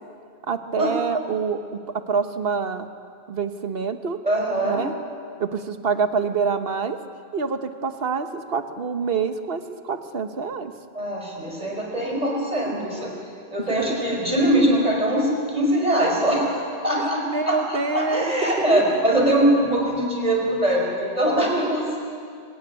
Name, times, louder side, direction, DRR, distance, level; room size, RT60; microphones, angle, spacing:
voice 1, 0.5-1.6 1.9-2.9 3.3-4.2 4.6-4.9 5.4-7.0 7.3-10.7 17.0-18.8, right 5 dB, 70° right, 8 dB, 1.4 m, -26 dB
voice 2, 4.2-4.8 10.9-13.1 13.5-22.0, right 1 dB, 40° right, -1 dB, 5.4 m, -22 dB
25.0 x 15.5 x 9.7 m, 2.4 s
omnidirectional pair, 1.0 m